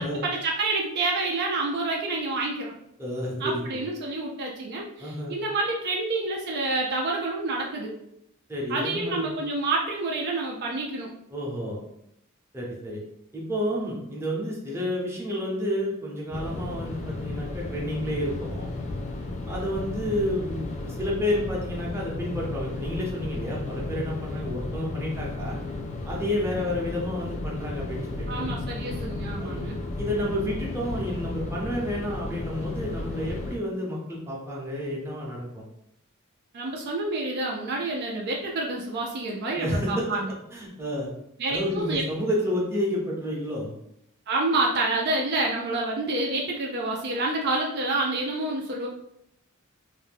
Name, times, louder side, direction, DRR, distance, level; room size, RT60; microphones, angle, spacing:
voice 1, 0.0-2.7 3.4-7.9 8.7-11.1 28.3-29.8 36.5-40.3 41.4-42.0 44.3-48.9, right 2 dB, 50° right, -1 dB, 0.4 m, -28 dB
voice 2, 3.0-3.8 5.0-5.3 8.5-9.4 11.3-11.8 12.5-13.0 13.3-18.7 19.5-25.6 26.1-28.5 29.4-29.7 30.0-35.7 39.5-40.2 40.5-41.1 41.5-43.7, left 1 dB, 10° right, -4 dB, 0.7 m, -30 dB
sound 1, 16.3-33.6, left 2 dB, 35° left, 0.3 m, -34 dB
2.5 x 2.2 x 3.3 m, 0.78 s
head